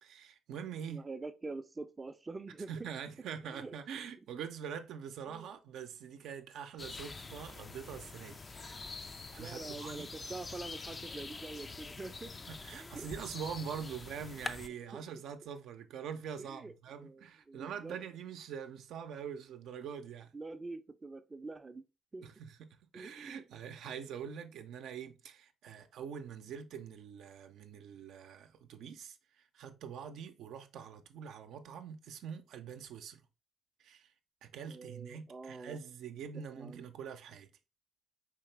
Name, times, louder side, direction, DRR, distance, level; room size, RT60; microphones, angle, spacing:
voice 1, 0.0-1.0 2.7-10.1 12.5-20.3 22.2-33.2 33.8-34.1 34.4-37.5, right 7 dB, 80° right, 0.6 m, -44 dB
voice 2, 0.9-2.7 3.5-3.8 5.3-5.5 9.4-12.3 12.7-13.1 14.9-15.0 16.4-18.0 20.3-21.8 22.1-22.3 22.9-23.4 34.7-35.8 36.6-36.9, right 3 dB, 25° right, 0.5 m, -45 dB
sound 1, 6.8-14.7, left 3 dB, 30° left, 0.4 m, -45 dB
4.8 x 2.9 x 3.2 m
cardioid pair, 90°, 0 cm